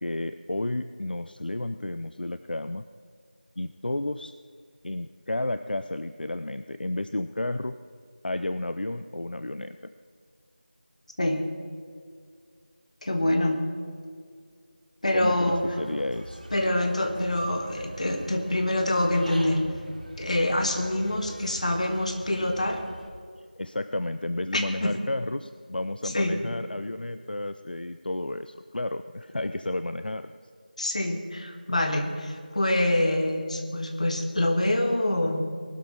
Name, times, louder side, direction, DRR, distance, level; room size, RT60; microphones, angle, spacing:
voice 1, 0.0-2.8 3.6-4.3 4.8-7.7 8.2-9.9 13.3-13.4 15.1-16.4 23.6-30.3, left 2 dB, 70° left, 11 dB, 0.5 m, -32 dB
voice 2, 13.0-13.6 15.0-15.6 16.5-19.6 20.2-22.8 24.5-25.0 26.1-26.4 30.8-35.4, left 1 dB, 45° left, 5 dB, 1.6 m, -25 dB
Human voice / Bird, 15.4-23.1, equal, 55° right, 3.9 m, -43 dB
19.5 x 12.5 x 4.3 m, 2.1 s
figure-of-eight pair, 175°, 5 cm